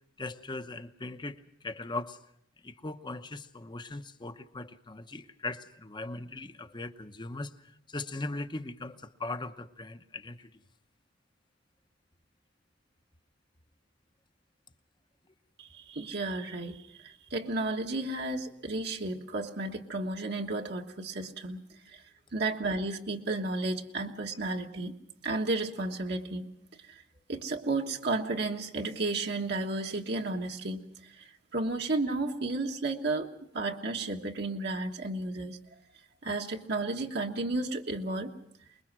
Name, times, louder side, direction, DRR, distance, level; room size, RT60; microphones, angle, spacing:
voice 1, 0.2-2.2 2.6-7.5 7.9-10.5, left 2 dB, 25° left, 10 dB, 0.9 m, -39 dB
voice 2, 15.6-21.6 21.9-22.0 22.3-24.9 25.2-26.5 26.9-27.0 27.3-35.6 36.2-38.3, right 2 dB, 60° right, 1 dB, 1.4 m, -33 dB
24.5 x 21.5 x 6.1 m, 0.72 s
head